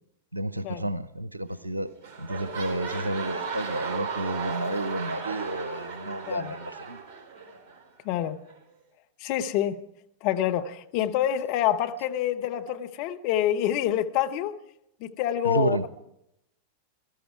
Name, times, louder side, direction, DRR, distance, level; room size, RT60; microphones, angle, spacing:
voice 1, 0.3-1.9 2.2-7.0 15.4-15.8, right 1 dB, 85° right, 0.7 m, -31 dB
sound 1, 1.5-1.7 2.0-7.8 8.5-8.6, right 5 dB, 40° right, 4.1 m, -35 dB
voice 2, 8.0-8.5 9.2-9.8 10.2-14.5 15.0-15.9, left 11 dB, 45° left, 0.9 m, -27 dB
18.0 x 13.5 x 4.7 m
figure-of-eight pair, 90°, 0 cm